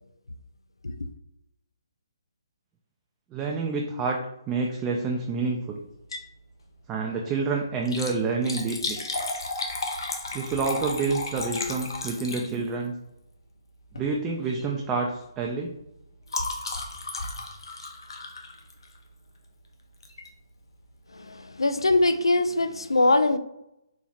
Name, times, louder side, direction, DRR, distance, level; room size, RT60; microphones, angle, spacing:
voice 1, 3.3-4.2 4.5-5.8 6.9-9.0 10.3-12.9 14.0-15.8, right 4 dB, 15° right, 0.3 m, -28 dB
Liquid, 5.9-6.4 6.7-6.8 7.7-12.9 13.8-14.1 14.5-14.7 15.0-19.1 20.0-20.3 20.8-20.9 21.1-21.2, left 2 dB, 65° left, 0.7 m, -34 dB
voice 2, 21.1-23.4, left 2 dB, 85° left, 0.3 m, -22 dB
4.2 x 2.9 x 2.4 m
figure-of-eight pair, 140°, 3 cm